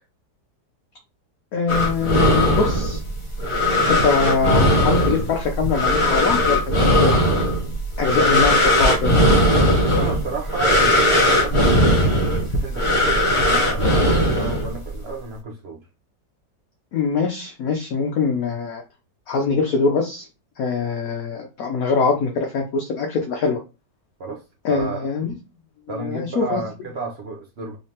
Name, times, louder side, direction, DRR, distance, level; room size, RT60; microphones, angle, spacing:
voice 1, 1.5-3.0 3.9-7.3 8.0-9.1 16.9-18.8 19.3-20.3 20.6-23.6 24.6-25.3 25.9-26.6, left 5 dB, 65° left, 1.0 m, -23 dB
sound 1, 1.7-15.0, left 1 dB, 40° left, 0.4 m, -18 dB
voice 2, 9.8-12.2 12.5-15.8 24.2-24.4 24.7-25.0 25.9-27.8, right 4 dB, 65° right, 0.6 m, -32 dB
3.6 x 3.2 x 2.8 m
omnidirectional pair, 1.9 m